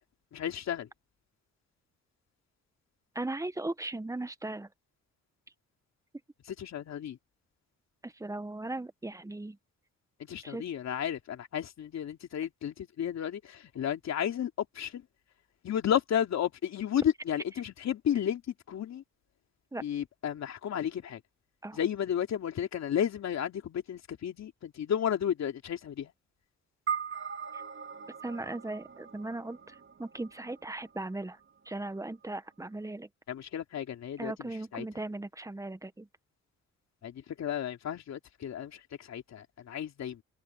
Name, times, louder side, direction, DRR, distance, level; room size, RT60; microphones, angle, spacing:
voice 1, 0.3-0.9 6.5-7.2 10.2-15.0 15.6-19.0 19.8-21.2 21.7-26.1 33.3-34.9 37.0-40.2, left 9 dB, 60° left, 3.2 m, -33 dB
voice 2, 3.1-4.7 8.0-9.6 10.4-10.6 19.7-19.8 21.6-21.8 28.2-31.4 31.6-33.1 34.2-36.1, right 2 dB, 10° right, 1.2 m, -38 dB
sound 1, 26.9-31.4, right 7 dB, 40° right, 2.8 m, -40 dB
open air
cardioid pair, 90°, 30 cm